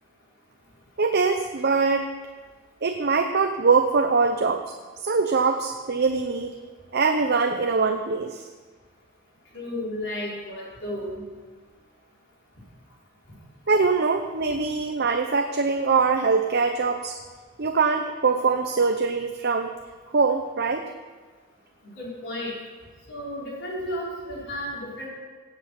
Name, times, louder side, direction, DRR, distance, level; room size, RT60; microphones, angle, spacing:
voice 1, 1.0-2.1 2.8-4.8 5.0-6.6 6.9-8.5 13.7-17.2 17.6-19.7 20.1-20.9, right 4 dB, 50° right, 6 dB, 0.7 m, -23 dB
voice 2, 9.5-11.2 21.9-22.6 23.1-25.1, left 1 dB, 60° left, -5 dB, 5.1 m, -33 dB
17.0 x 8.1 x 6.0 m, 1.4 s
head